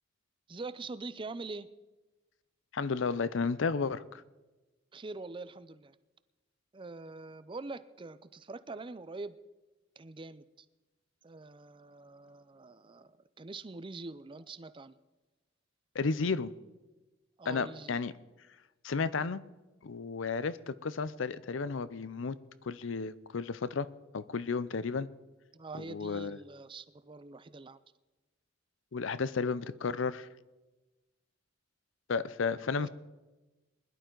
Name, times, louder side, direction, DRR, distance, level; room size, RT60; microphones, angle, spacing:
voice 1, 0.5-1.7 4.9-6.0 6.7-9.4 10.0-10.7 11.2-15.0 17.4-18.0 25.5-27.8 32.8-32.9, right 3 dB, 25° right, 15 dB, 0.5 m, -44 dB
voice 2, 2.7-4.2 15.9-16.5 17.5-18.1 18.8-19.4 19.8-22.4 22.6-23.9 24.1-25.1 25.8-26.4 28.9-30.3 32.1-32.9, left 4 dB, 70° left, 17 dB, 0.5 m, -33 dB
21.0 x 11.5 x 3.9 m, 1.1 s
head